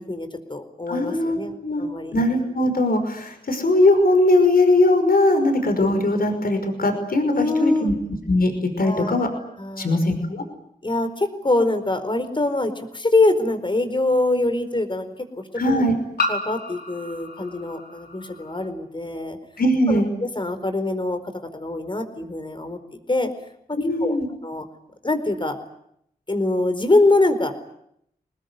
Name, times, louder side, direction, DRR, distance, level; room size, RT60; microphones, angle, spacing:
voice 1, 0.0-2.1 7.3-7.9 8.8-9.2 9.6-10.0 10.8-15.1 15.7-15.8 16.3-19.4 19.9-21.2 21.5-22.8 23.1-23.3 23.7-24.2 24.4-24.6 25.0-25.6 26.3-27.5, left 2 dB, 30° left, 9 dB, 4.6 m, -24 dB
voice 2, 0.9-1.9 2.1-7.9 8.3-9.3 9.8-10.4 15.6-15.9 19.6-20.1 23.8-24.3, left 1 dB, 65° left, 6 dB, 5.6 m, -20 dB
sound 1, 12.2-12.3 14.0-14.1 16.2-18.7, left 2 dB, 90° left, 5.1 m, -31 dB
26.5 x 20.0 x 9.7 m, 0.73 s
wide cardioid pair, 65°, 16 cm